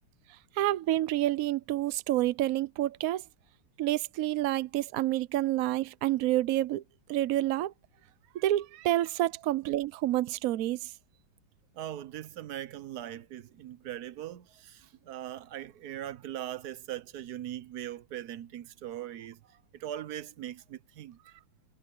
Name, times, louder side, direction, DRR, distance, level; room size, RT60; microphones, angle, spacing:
voice 1, 0.6-3.2 3.8-6.8 7.1-7.7 8.3-10.9, right 14 dB, 85° right, 0.7 m, -28 dB
voice 2, 11.7-19.4 19.7-21.2, right 12 dB, 60° right, 1.1 m, -40 dB
omnidirectional pair, 2.2 m